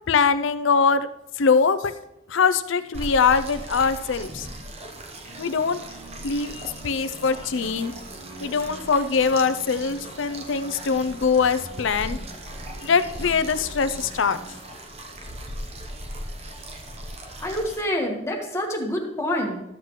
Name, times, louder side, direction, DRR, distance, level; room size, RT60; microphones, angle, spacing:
voice 1, 0.1-1.1 1.4-1.9 2.3-4.5 5.4-5.8 6.2-7.9 8.4-12.2 12.8-14.4, left 5 dB, 70° left, 12 dB, 0.5 m, -22 dB
sound 1, 2.9-17.8, right 1 dB, 30° right, 0.9 m, -38 dB
sound 2, 5.2-14.6, right 1 dB, 90° right, 2.5 m, -46 dB
voice 2, 17.4-19.6, equal, 15° left, 0 dB, 1.4 m, -27 dB
13.5 x 7.5 x 3.1 m, 0.89 s
head